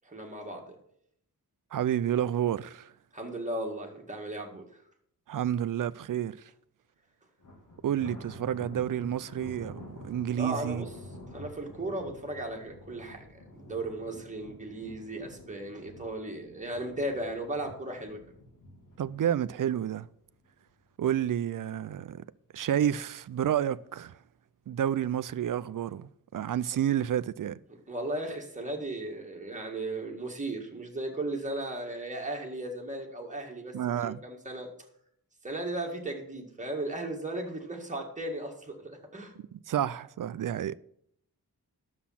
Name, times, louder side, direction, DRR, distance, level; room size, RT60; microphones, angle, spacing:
voice 1, 0.0-0.8 3.1-4.7 10.3-10.9 11.3-18.2 27.9-34.7 35.4-39.4, right 1 dB, 20° right, 1.9 m, -36 dB
voice 2, 1.7-2.9 5.3-6.4 7.8-10.9 19.0-20.1 21.0-22.2 22.5-24.2 24.7-27.6 33.7-34.2 39.7-40.8, right 10 dB, 60° right, 0.4 m, -30 dB
Thunder, 7.4-20.7 21.1-21.4 21.8-21.9 22.7-23.3, left 1 dB, 60° left, 2.8 m, -48 dB
10.5 x 7.3 x 5.7 m
wide cardioid pair, 140°, 36 cm